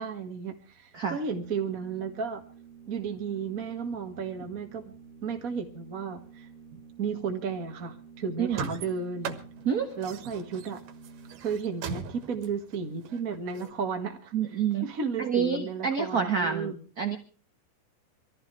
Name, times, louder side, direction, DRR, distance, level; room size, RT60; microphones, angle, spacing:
voice 1, 0.0-2.4 2.9-4.9 5.2-6.5 7.0-9.4 10.0-10.8 11.4-16.8, right 5 dB, 40° right, 4 dB, 1.4 m, -33 dB
Organ, 1.1-11.8, right 5 dB, 80° left, 4.8 m, -51 dB
voice 2, 8.4-8.7 9.6-9.9 11.9-12.0 14.3-14.9 15.2-17.2, right 7 dB, 60° right, 6 dB, 0.9 m, -28 dB
sound 1, 8.5-13.7, right 6 dB, 80° right, 3.0 m, -39 dB
25.0 x 15.0 x 3.3 m, 0.36 s
omnidirectional pair, 3.6 m